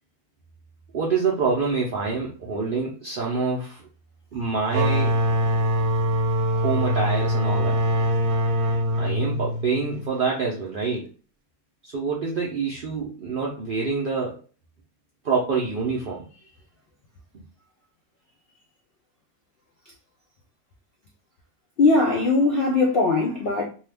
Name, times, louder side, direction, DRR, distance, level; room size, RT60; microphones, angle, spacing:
voice 1, 0.9-3.8 4.3-5.2 6.6-7.8 9.0-11.1 11.8-14.4 15.2-16.2, right 4 dB, 70° right, 0.5 m, -26 dB
sound 1, 4.7-10.1, equal, 85° right, 1.1 m, -23 dB
voice 2, 21.8-23.7, left 3 dB, 70° left, 0.5 m, -20 dB
2.7 x 2.3 x 3.3 m
omnidirectional pair, 1.6 m